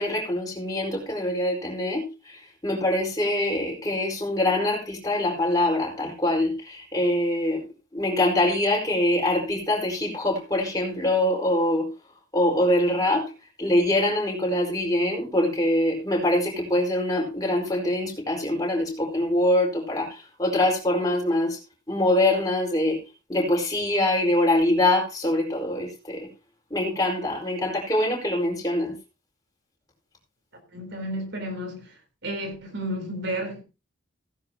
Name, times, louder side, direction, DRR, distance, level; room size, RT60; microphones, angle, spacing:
voice 1, 0.0-7.6 7.9-11.8 12.3-13.3 13.6-21.6 21.9-23.0 23.3-26.3 26.7-28.9, left 1 dB, 20° left, 4.7 m, -24 dB
voice 2, 30.7-31.9 32.2-33.6, right 1 dB, 60° right, 3.9 m, -32 dB
16.5 x 10.5 x 2.9 m
head